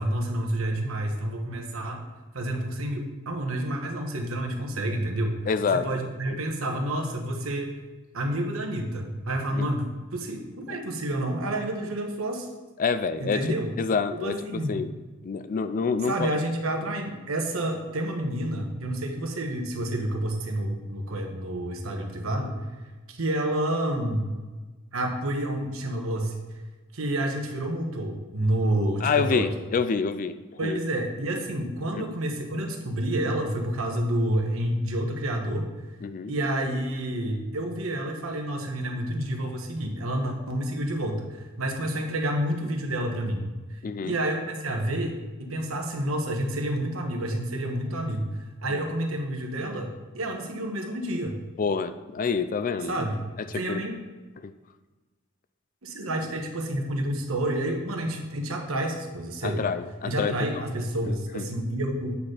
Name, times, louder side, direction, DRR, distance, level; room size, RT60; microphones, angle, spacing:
voice 1, 0.0-2.0 2.3-5.4 5.7-7.8 8.1-9.8 10.1-12.5 13.2-13.7 14.2-14.8 16.0-22.6 23.1-24.3 24.9-26.4 26.9-29.5 30.6-35.7 36.3-51.3 52.9-53.2 53.5-53.9 55.8-59.6 60.0-62.2, right 1 dB, 90° right, 3 dB, 1.2 m, -29 dB
voice 2, 5.5-5.9 9.5-9.7 10.7-10.8 12.8-14.4 14.7-14.9 15.2-16.3 29.0-30.8 32.0-32.1 36.0-36.3 43.8-44.1 48.7-48.8 51.6-53.0 53.5-53.8 54.4-54.5 59.4-60.6 61.3-61.4, left 5 dB, 40° left, 12 dB, 0.4 m, -27 dB
8.4 x 4.4 x 4.9 m, 1.2 s
head